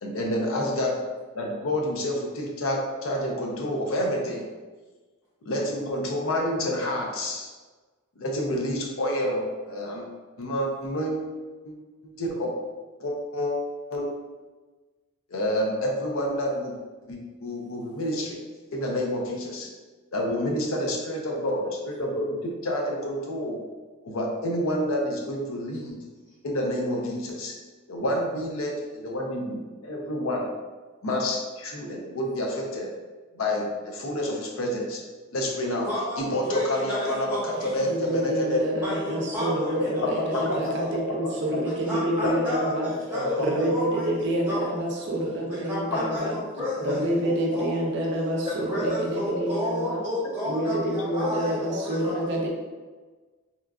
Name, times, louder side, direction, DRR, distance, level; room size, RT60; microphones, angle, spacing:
voice 1, 0.0-1.0 1.3-4.5 5.4-7.5 8.2-10.1 10.4-11.2 11.6-11.7 12.0-12.5 13.0-13.5 13.9-14.2 15.3-16.8 17.1-18.4 18.7-19.7 20.1-23.6 24.0-26.0 26.4-27.5 27.9-30.5 31.0-32.9 33.4-35.0 35.3-35.9 36.2-38.6 39.7-40.7 41.5-41.6 42.2-42.3 43.1-43.3 51.2-51.3, left 1 dB, 70° left, 0 dB, 0.5 m, -28 dB
voice 2, 35.9-38.1 38.8-40.8 41.6-44.1 44.5-44.7 45.5-47.8 48.4-52.3, left 1 dB, 10° right, -12 dB, 0.7 m, -32 dB
voice 3, 37.9-42.9 43.4-46.4 46.8-50.0 50.4-52.5, right 1 dB, 55° right, -1 dB, 0.5 m, -27 dB
3.0 x 2.4 x 2.3 m, 1.3 s
head